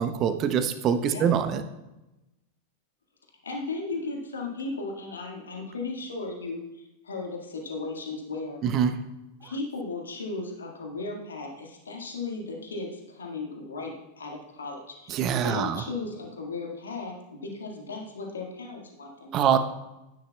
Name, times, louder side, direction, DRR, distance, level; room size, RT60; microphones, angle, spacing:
voice 1, 0.0-1.6 8.6-8.9 15.1-15.8 19.3-19.6, right 8 dB, 35° right, 10 dB, 0.8 m, -24 dB
voice 2, 1.0-1.3 3.4-8.6 9.4-19.6, left 3 dB, 70° left, 0 dB, 1.8 m, -36 dB
13.0 x 9.6 x 2.3 m, 0.97 s
figure-of-eight pair, 90°, 0 cm